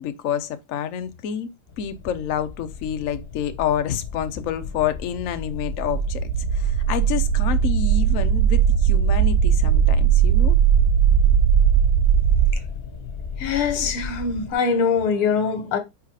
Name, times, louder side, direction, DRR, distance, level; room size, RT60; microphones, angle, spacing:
voice 1, 0.0-1.5 1.8-10.6, left 9 dB, 70° left, 0.7 m, -28 dB
sound 1, 1.7-14.5, left 5 dB, 35° left, 1.0 m, -35 dB
sound 2, 5.6-12.5, right 8 dB, 75° right, 1.1 m, -18 dB
voice 2, 13.4-15.8, left 5 dB, 90° left, 2.1 m, -23 dB
5.0 x 4.7 x 4.8 m
omnidirectional pair, 2.3 m